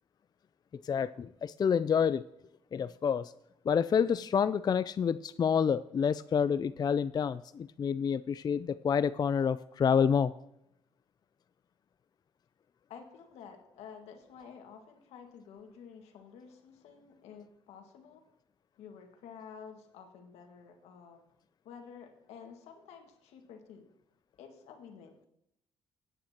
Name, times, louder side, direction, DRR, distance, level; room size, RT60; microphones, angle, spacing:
voice 1, 0.7-2.2 2.7-3.3 3.7-10.3, left 7 dB, 40° left, 14 dB, 0.3 m, -28 dB
voice 2, 12.9-18.2 18.8-21.2 21.6-23.9 24.4-25.1, left 6 dB, 85° left, 4 dB, 1.7 m, -51 dB
17.0 x 9.1 x 2.9 m, 0.81 s
supercardioid pair, 65°, 11 cm